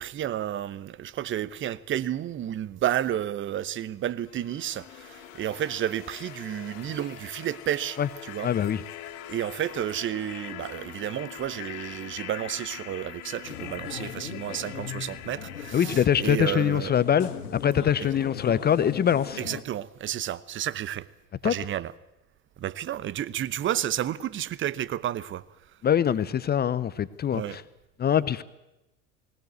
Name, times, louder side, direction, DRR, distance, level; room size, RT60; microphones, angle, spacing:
voice 1, 0.0-8.5 9.3-16.9 18.0-18.1 19.4-21.1 21.4-21.9 22.6-25.8 27.3-27.6, right 11 dB, 25° right, 0.8 m, -31 dB
sound 1, 4.3-17.2, left 12 dB, 60° left, 2.1 m, -43 dB
voice 2, 8.4-8.8 15.7-19.4 21.4-21.5 25.8-27.6 28.0-28.4, left 9 dB, 20° left, 0.7 m, -23 dB
sound 2, 13.4-19.6, left 7 dB, 80° left, 1.7 m, -39 dB
20.0 x 19.5 x 8.1 m
hypercardioid pair, 85°, 45 cm